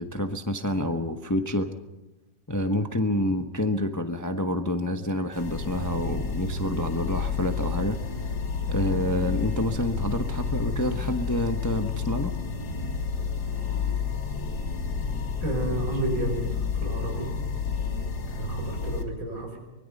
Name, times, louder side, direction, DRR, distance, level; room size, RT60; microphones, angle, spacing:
voice 1, 0.0-1.7 2.5-8.0 8.7-12.3, left 1 dB, 15° left, 6 dB, 0.7 m, -28 dB
sound 1, 5.3-19.0, left 5 dB, 60° left, 2.3 m, -30 dB
voice 2, 15.4-17.3 18.3-19.6, right 1 dB, 85° right, 2 dB, 6.5 m, -31 dB
24.5 x 21.5 x 5.4 m, 1.0 s
omnidirectional pair, 2.0 m